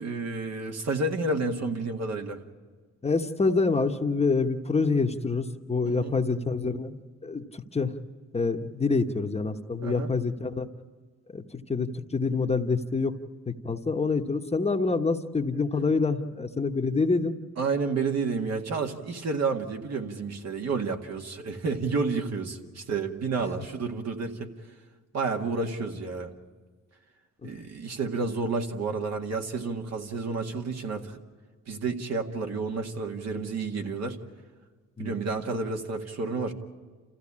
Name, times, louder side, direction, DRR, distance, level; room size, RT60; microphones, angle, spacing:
voice 1, 0.0-2.4 5.9-6.1 9.8-10.1 17.6-24.5 25.1-26.3 27.4-31.2 31.7-34.2 35.0-36.5, right 4 dB, 60° right, 3 dB, 2.0 m, -30 dB
voice 2, 3.0-7.9 8.3-10.7 11.3-13.1 13.5-17.4 27.4-27.5 35.0-35.2, left 4 dB, 20° left, 5 dB, 1.1 m, -27 dB
28.0 x 15.0 x 8.7 m, 1.5 s
cardioid pair, 90°, 30 cm